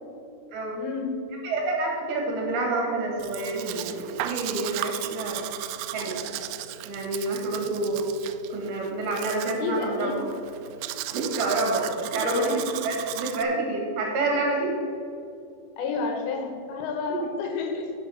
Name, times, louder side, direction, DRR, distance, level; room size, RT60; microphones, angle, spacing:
voice 1, 0.7-1.1 9.4-10.2 12.2-12.6 15.8-17.9, left 5 dB, 75° left, 4 dB, 3.2 m, -30 dB
voice 2, 1.4-5.5 5.9-6.2 6.9-8.1 8.5-10.2 11.1-14.7 17.1-17.2, right 2 dB, 65° right, -1 dB, 3.4 m, -28 dB
Domestic sounds home sounds, 3.2-13.4, right 13 dB, 90° right, 2.3 m, -36 dB
11.0 x 6.9 x 5.7 m, 2.5 s
omnidirectional pair, 5.2 m